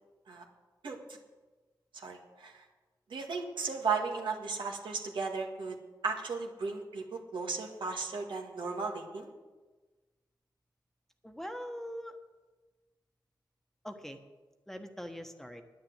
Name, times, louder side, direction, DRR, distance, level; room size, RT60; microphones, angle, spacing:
voice 1, 2.0-2.5 3.1-5.8 6.0-7.0 7.3-9.3, right 4 dB, 85° right, 2 dB, 1.8 m, -35 dB
voice 2, 11.2-12.2 13.8-14.2 14.7-15.6, equal, 5° left, 5 dB, 1.2 m, -42 dB
10.5 x 10.0 x 7.9 m, 1.3 s
wide cardioid pair, 80°, 8 cm